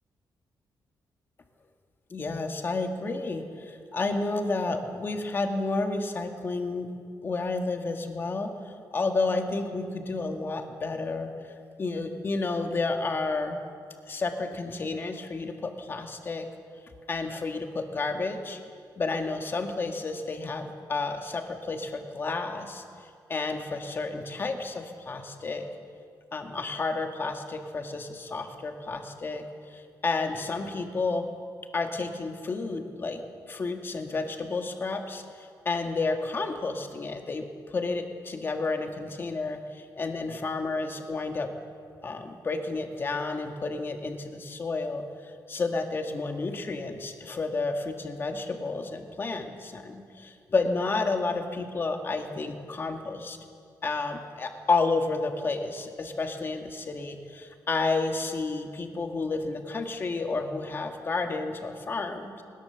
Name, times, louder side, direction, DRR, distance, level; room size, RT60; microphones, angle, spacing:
voice 1, 2.1-6.9 7.2-13.6 14.1-16.5 17.1-18.6 19.0-22.8 23.3-25.7 26.3-29.4 29.7-31.3 31.7-41.5 42.0-53.4 53.8-62.4, left 3 dB, 30° left, 4 dB, 1.8 m, -31 dB
21.0 x 20.0 x 7.1 m, 2.2 s
wide cardioid pair, 175°, 8 cm